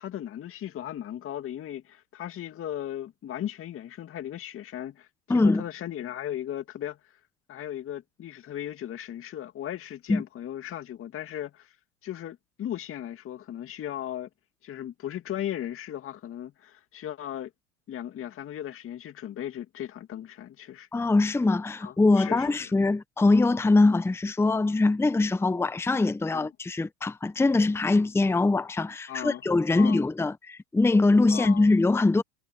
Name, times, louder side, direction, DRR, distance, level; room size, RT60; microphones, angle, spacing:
voice 1, 0.0-7.2 7.5-11.8 12.0-14.3 14.6-17.5 17.9-20.9 21.8-22.7 23.7-23.8 25.4-25.5 26.3-26.5 29.1-29.4 29.7-30.0 31.3-31.7, left 11 dB, 30° left, 2.2 m, -37 dB
voice 2, 5.3-5.6 10.1-10.2 20.9-32.2, left 3 dB, 5° left, 1.1 m, -23 dB
hypercardioid pair, 95°, 44 cm